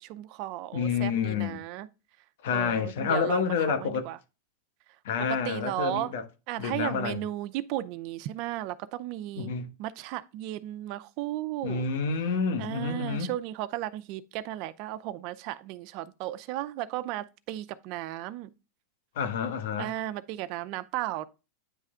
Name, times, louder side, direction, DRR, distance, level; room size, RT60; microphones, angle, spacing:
voice 1, 0.0-1.9 2.5-4.2 5.2-6.1 6.5-9.5 9.8-11.9 12.6-18.5 19.8-21.3, right 14 dB, 50° right, 0.5 m, -35 dB
voice 2, 0.7-1.6 2.4-4.0 5.0-6.2 6.6-7.2 9.4-9.7 11.6-13.3 19.2-19.9, left 6 dB, 75° left, 1.2 m, -29 dB
9.3 x 3.3 x 3.7 m
supercardioid pair, 135°, 0 cm